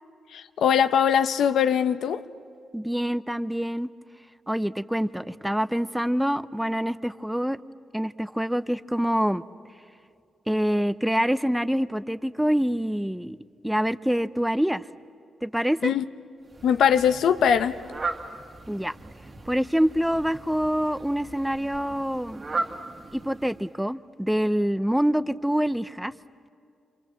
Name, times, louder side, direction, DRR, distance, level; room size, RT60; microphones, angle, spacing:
voice 1, 0.3-2.2 15.8-16.0 16.6-17.7, left 8 dB, 90° left, 0.7 m, -21 dB
voice 2, 2.7-3.9 4.5-7.6 7.9-9.4 10.5-13.4 13.6-14.9 15.4-15.9 18.7-18.9 19.5-22.4 23.1-26.1, equal, 5° right, 0.6 m, -26 dB
Fowl, 16.4-23.8, right 3 dB, 30° right, 1.7 m, -37 dB
27.5 x 27.5 x 7.6 m
wide cardioid pair, 125°, 0 cm